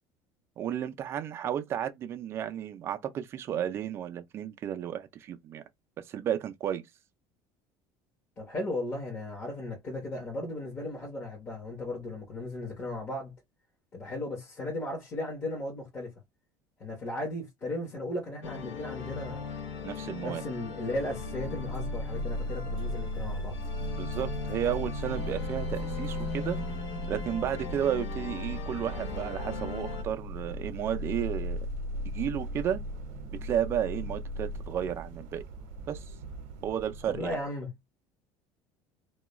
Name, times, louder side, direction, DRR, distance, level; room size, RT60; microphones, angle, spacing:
voice 1, 0.6-5.6 6.0-6.8 19.8-20.4 24.0-26.6 27.1-31.6 32.0-32.8 33.3-35.4 35.9-36.0 36.6-37.4, right 10 dB, 30° right, 0.3 m, -33 dB
voice 2, 8.4-13.3 13.9-16.1 16.8-19.5 20.2-23.6 37.1-37.7, left 1 dB, 25° left, 0.9 m, -36 dB
sound 1, 18.4-30.0, left 5 dB, 90° left, 0.7 m, -39 dB
sound 2, 20.8-37.4, equal, 75° right, 0.7 m, -37 dB
2.3 x 2.2 x 3.0 m
cardioid pair, 175°, 9 cm